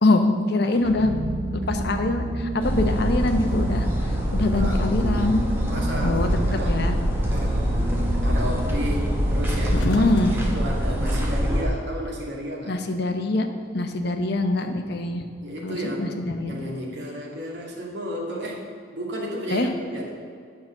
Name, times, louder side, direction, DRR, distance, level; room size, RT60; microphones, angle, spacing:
voice 1, 0.0-1.1 1.7-5.4 6.0-6.9 9.9-10.4 12.7-13.5 13.7-15.2 15.6-16.6 19.5-19.7, left 2 dB, 55° left, 6 dB, 0.9 m, -24 dB
voice 2, 0.6-1.1 1.6-1.7 4.4-5.3 5.7-8.0 8.2-12.8 15.4-16.2 16.4-20.1, equal, 60° right, -2 dB, 2.2 m, -33 dB
sound 1, 0.8-10.0, right 1 dB, 80° right, 1.1 m, -30 dB
sound 2, 2.5-10.5, left 1 dB, 85° left, 1.1 m, -39 dB
sound 3, 2.6-11.6, equal, 10° right, 1.5 m, -25 dB
9.3 x 5.9 x 7.0 m, 2.2 s
head